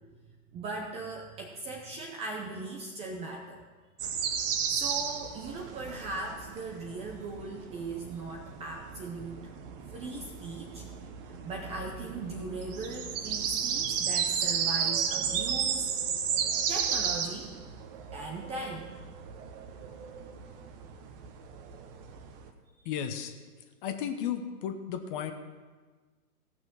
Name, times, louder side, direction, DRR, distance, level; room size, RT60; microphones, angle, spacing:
voice 1, 0.5-3.6 4.3-9.4 9.9-10.9 11.2-15.9 16.7-17.5 18.1-19.2, right 3 dB, 15° right, 1 dB, 0.6 m, -39 dB
sound 1, 4.0-22.5, right 7 dB, 35° right, 1.0 m, -34 dB
voice 2, 22.8-23.3 23.8-25.3, left 8 dB, 35° left, 7 dB, 1.0 m, -34 dB
16.5 x 6.2 x 6.0 m, 1.4 s
hypercardioid pair, 130°, 47 cm